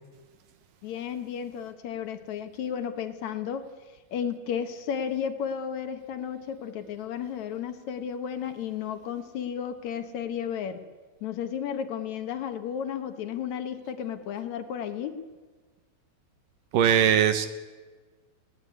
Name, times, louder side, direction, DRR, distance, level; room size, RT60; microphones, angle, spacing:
voice 1, 0.8-3.7 4.1-10.8 11.2-15.2, left 8 dB, 60° left, 8 dB, 2.2 m, -33 dB
voice 2, 16.7-17.5, right 9 dB, 70° right, 10 dB, 2.3 m, -20 dB
20.0 x 17.5 x 9.5 m, 1.3 s
omnidirectional pair, 4.5 m